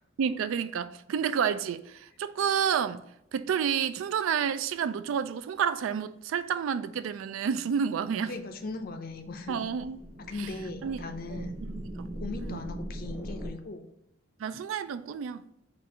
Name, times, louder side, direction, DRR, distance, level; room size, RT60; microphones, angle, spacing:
voice 1, 0.2-3.0 3.3-8.4 9.5-10.0 10.4-10.5 10.8-12.1 12.4-12.7 14.4-15.5, right 7 dB, 80° right, 0.3 m, -30 dB
voice 2, 8.3-9.6 10.3-11.6 12.1-13.9, left 3 dB, 45° left, 0.5 m, -38 dB
sound 1, 8.6-13.5, right 1 dB, 5° right, 0.7 m, -40 dB
4.2 x 2.5 x 4.7 m
head